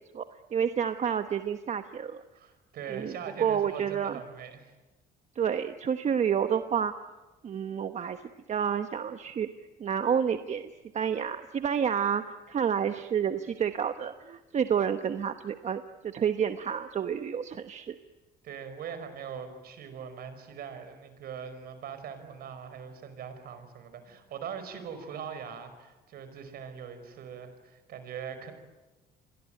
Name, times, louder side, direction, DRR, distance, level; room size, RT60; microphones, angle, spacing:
voice 1, 0.5-2.2 2.9-4.2 5.3-6.9 7.4-8.2 8.5-9.5 9.8-18.0, right 8 dB, 45° right, 9 dB, 1.1 m, -29 dB
voice 2, 2.3-4.7 18.4-28.5, right 7 dB, 65° right, 10 dB, 5.3 m, -41 dB
28.5 x 23.0 x 9.2 m, 1.2 s
cardioid pair, 110°, 17 cm